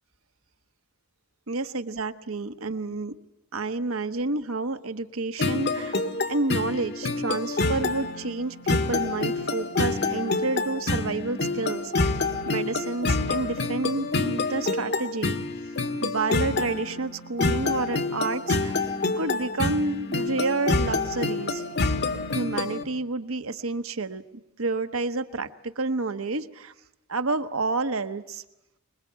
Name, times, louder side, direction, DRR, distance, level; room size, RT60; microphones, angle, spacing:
voice 1, 1.5-3.2 3.5-12.1 12.5-15.4 16.0-18.7 19.2-21.6 22.3-24.2 24.6-26.7 27.1-28.4, right 3 dB, 90° right, 9 dB, 1.2 m, -29 dB
sound 1, 5.4-22.8, left 3 dB, 55° left, 1.8 m, -27 dB
26.5 x 21.5 x 8.2 m, 0.91 s
head